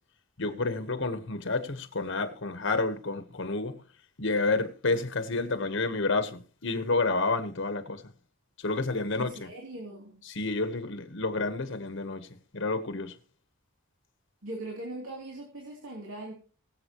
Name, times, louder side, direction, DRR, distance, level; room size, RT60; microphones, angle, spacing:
voice 1, 0.4-3.8 4.2-8.0 8.6-9.5 10.3-12.3 12.5-13.2, left 3 dB, 60° left, 1.2 m, -30 dB
voice 2, 9.1-10.2 14.4-16.3, right 1 dB, 70° right, 3.1 m, -40 dB
22.0 x 7.6 x 3.0 m
head